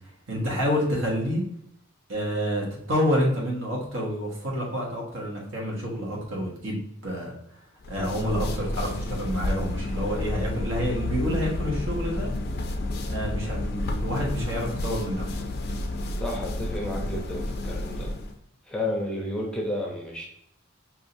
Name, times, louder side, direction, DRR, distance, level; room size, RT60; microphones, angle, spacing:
voice 1, 0.3-1.4 2.1-7.3 7.9-12.3 13.1-15.2, equal, 65° right, -2 dB, 1.3 m, -28 dB
sound 1, 7.8-18.3, left 1 dB, 45° left, 0.4 m, -30 dB
voice 2, 16.2-18.1 18.7-20.2, left 1 dB, 5° left, -2 dB, 0.6 m, -31 dB
4.8 x 2.7 x 2.6 m, 0.74 s
head